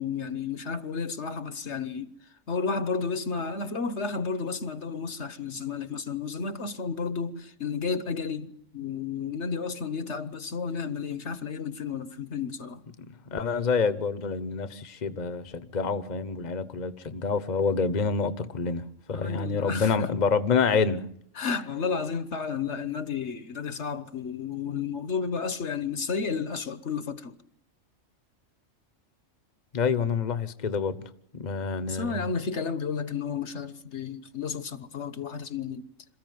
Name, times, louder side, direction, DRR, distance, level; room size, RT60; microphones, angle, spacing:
voice 1, 0.0-2.1 2.5-12.8 19.1-20.2 21.3-27.4 31.9-35.8, left 5 dB, 60° left, 1.5 m, -32 dB
voice 2, 13.3-21.0 29.7-31.0 31.3-32.2, left 5 dB, 35° left, 1.2 m, -27 dB
27.5 x 14.5 x 9.4 m
omnidirectional pair, 1.3 m